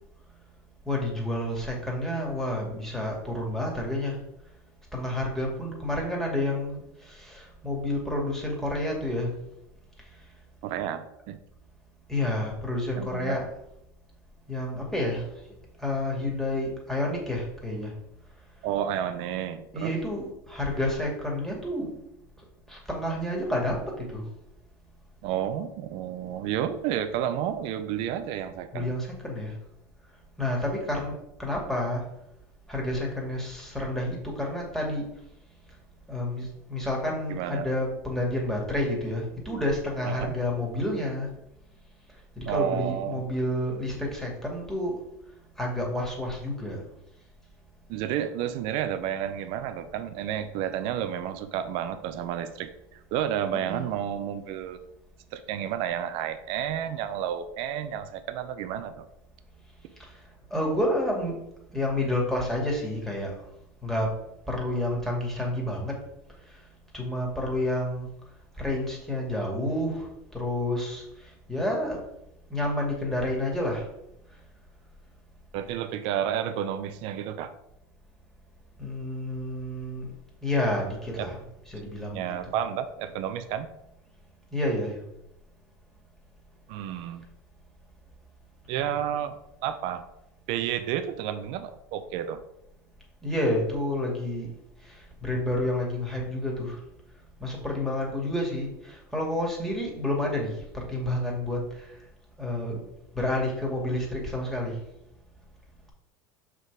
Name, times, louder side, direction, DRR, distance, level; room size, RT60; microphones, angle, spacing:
voice 1, 0.9-4.2 4.9-9.3 12.1-13.5 14.5-15.2 15.8-17.9 19.7-21.9 22.7-24.2 28.7-29.6 30.4-31.1 31.4-32.0 32.7-35.1 36.1-41.3 42.4-45.0 45.6-46.8 53.7-53.9 60.0-60.2 60.5-63.3 63.8-64.2 64.5-66.0 66.9-68.1 68.6-72.0 72.5-73.9 78.8-80.1 80.4-81.4 81.7-82.3 84.5-85.0 88.8-88.9 93.2-94.5 94.8-96.8 97.4-101.9 102.4-102.8 103.1-104.8, left 1 dB, 5° left, -2 dB, 2.2 m, -29 dB
voice 2, 10.6-11.4 13.0-13.4 18.6-20.0 25.2-28.9 37.3-37.7 40.0-40.4 42.5-43.2 47.9-54.8 55.3-59.1 75.5-77.5 81.2-81.3 82.1-83.7 86.7-87.2 88.7-90.0 90.5-92.4, right 10 dB, 65° right, 10 dB, 0.6 m, -31 dB
5.6 x 3.8 x 4.7 m, 0.82 s
supercardioid pair, 95°, 10 cm